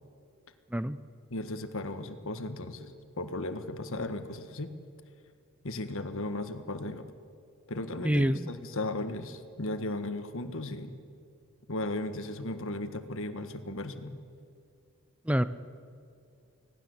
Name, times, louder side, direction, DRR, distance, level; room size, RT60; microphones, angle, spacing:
voice 1, 1.3-4.7 5.6-7.0 7.7-10.9 11.7-14.2, left 2 dB, 60° left, 9 dB, 1.6 m, -36 dB
voice 2, 8.0-8.5 15.3-15.4, equal, 5° right, 13 dB, 0.6 m, -26 dB
25.0 x 18.0 x 8.0 m, 2.5 s
head